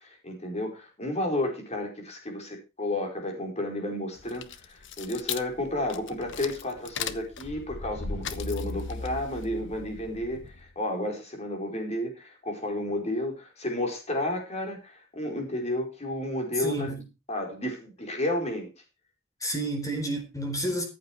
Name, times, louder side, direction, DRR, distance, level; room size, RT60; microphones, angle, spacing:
voice 1, 0.0-16.9 17.3-18.7, left 1 dB, 35° left, 4.7 m, -32 dB
sound 1, 4.2-10.7, left 5 dB, 65° left, 1.1 m, -37 dB
voice 2, 16.5-17.1 19.4-20.8, right 1 dB, 15° left, 4.1 m, -30 dB
14.5 x 8.4 x 4.7 m
head